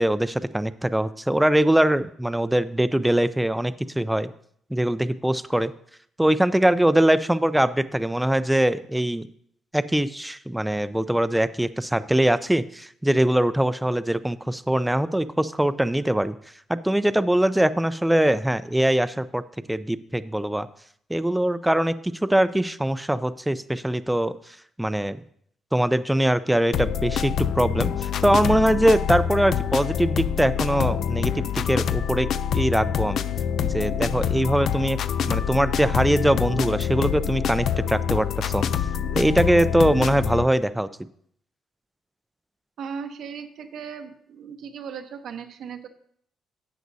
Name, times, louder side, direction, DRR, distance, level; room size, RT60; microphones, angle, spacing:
voice 1, 0.0-4.3 4.7-5.7 6.2-9.3 9.7-16.3 16.7-19.4 19.7-20.7 21.1-24.3 24.8-25.2 25.7-32.3 32.5-33.3 33.7-35.0 35.3-38.6 39.2-40.9, right 1 dB, 5° right, 14 dB, 0.4 m, -22 dB
sound 1, 26.7-40.5, left 8 dB, 70° left, 0.4 m, -26 dB
voice 2, 42.8-45.9, right 6 dB, 70° right, 5 dB, 0.8 m, -37 dB
12.5 x 8.2 x 2.7 m, 0.65 s
cardioid pair, 90°, 0 cm